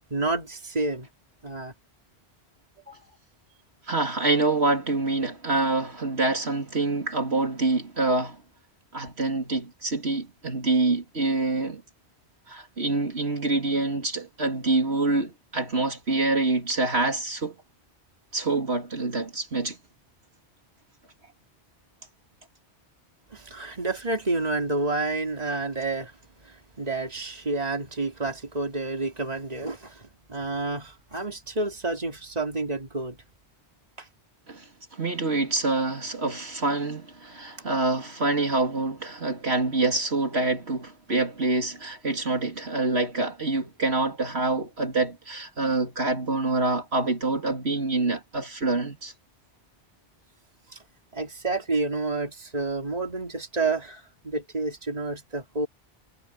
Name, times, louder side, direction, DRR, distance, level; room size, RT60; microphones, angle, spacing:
voice 1, 0.1-1.1 1.4-1.7 2.9-3.0 23.3-26.1 26.4-33.2 51.1-55.7, right 3 dB, 35° right, 2.9 m, -29 dB
voice 2, 3.9-8.4 8.9-11.8 12.5-17.5 18.3-19.8 34.5-34.6 34.9-49.1, right 3 dB, 70° right, 3.4 m, -26 dB
omnidirectional pair, 1.1 m